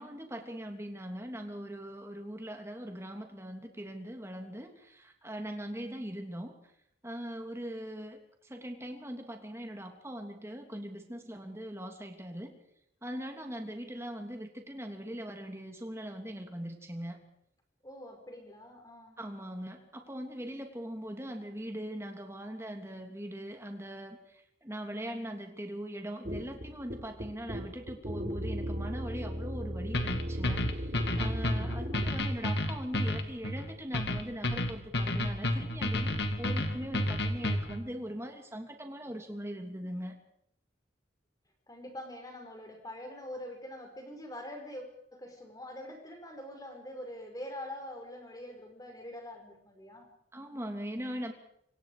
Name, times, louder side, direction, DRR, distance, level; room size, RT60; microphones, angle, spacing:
voice 1, 0.0-6.6 7.0-12.6 13.0-17.2 19.2-40.1 50.3-51.3, equal, 15° right, 4 dB, 3.0 m, -41 dB
voice 2, 17.8-19.2 41.7-50.1, left 1 dB, 20° left, 3 dB, 5.6 m, -44 dB
sound 1, 26.2-32.2, equal, 45° right, 4.5 m, -36 dB
sound 2, 29.9-37.8, left 1 dB, 65° left, 2.5 m, -31 dB
27.0 x 25.0 x 5.1 m, 0.74 s
head